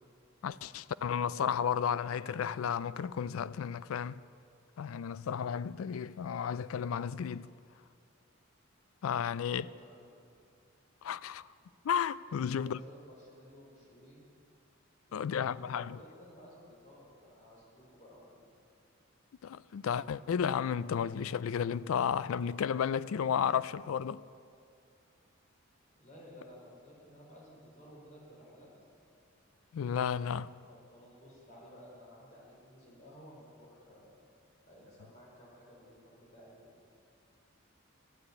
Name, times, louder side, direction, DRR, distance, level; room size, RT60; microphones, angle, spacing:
voice 1, 0.4-4.2 4.8-7.5 9.0-9.6 11.0-11.5 11.8-12.8 15.1-16.0 19.4-24.2 29.7-30.5, left 7 dB, 75° left, 0.4 m, -33 dB
voice 2, 9.3-10.1 12.3-14.2 15.1-18.4 26.0-28.7 29.5-29.6 30.7-34.1 34.7-36.6, equal, 35° left, 4.3 m, -55 dB
12.5 x 9.2 x 8.5 m
head